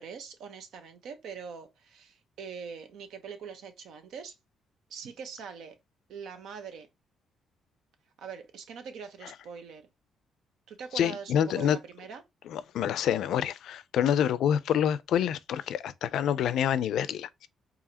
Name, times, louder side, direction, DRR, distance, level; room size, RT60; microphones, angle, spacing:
voice 1, 0.0-4.3 4.9-5.8 6.1-6.9 8.2-9.9 10.7-12.2, right 6 dB, 80° right, 0.9 m, -43 dB
voice 2, 11.0-11.8 12.5-17.5, left 9 dB, 75° left, 0.4 m, -27 dB
4.8 x 2.8 x 2.8 m
cardioid pair, 90°, 0 cm